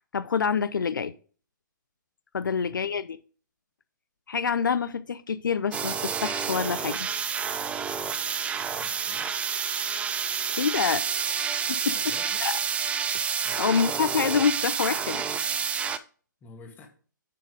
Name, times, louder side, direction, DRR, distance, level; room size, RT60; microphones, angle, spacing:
voice 1, 0.1-1.1 2.3-3.2 4.3-7.1 10.6-11.0 11.7-11.9 12.4-12.5 13.1-15.2, left 6 dB, 75° left, 0.5 m, -27 dB
voice 2, 2.4-2.8 8.6-9.3 11.9-12.3 13.4-13.7 16.4-16.9, left 4 dB, 15° left, 1.8 m, -49 dB
sound 1, 5.5-13.2, right 6 dB, 25° right, 1.2 m, -50 dB
sound 2, 5.7-16.0, right 7 dB, 10° right, 0.4 m, -29 dB
6.9 x 5.9 x 4.9 m
figure-of-eight pair, 130°, 11 cm